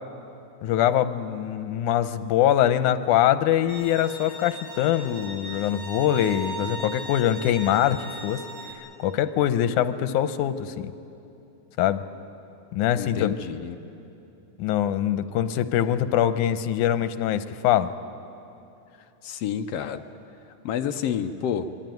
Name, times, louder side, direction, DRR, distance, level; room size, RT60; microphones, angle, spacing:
voice 1, 0.6-8.4 9.0-10.9 11.8-12.0 12.7-13.3 14.6-17.9, left 11 dB, 90° left, 11 dB, 2.3 m, -23 dB
Bowed string instrument, 3.7-8.7, right 2 dB, 50° right, 6.6 m, -38 dB
voice 2, 13.0-13.8 19.2-20.0 20.6-21.7, left 8 dB, 70° left, 8 dB, 1.6 m, -29 dB
26.5 x 21.5 x 9.2 m, 2.8 s
omnidirectional pair, 3.5 m